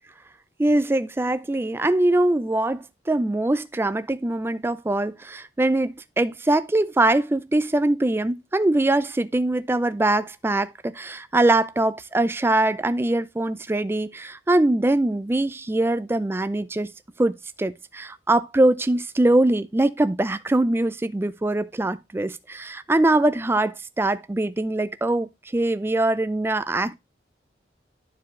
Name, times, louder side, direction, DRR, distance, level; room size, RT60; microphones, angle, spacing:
voice 1, 0.6-16.9 17.2-26.9, right 2 dB, 15° right, 0.3 m, -22 dB
10.5 x 4.7 x 3.1 m
head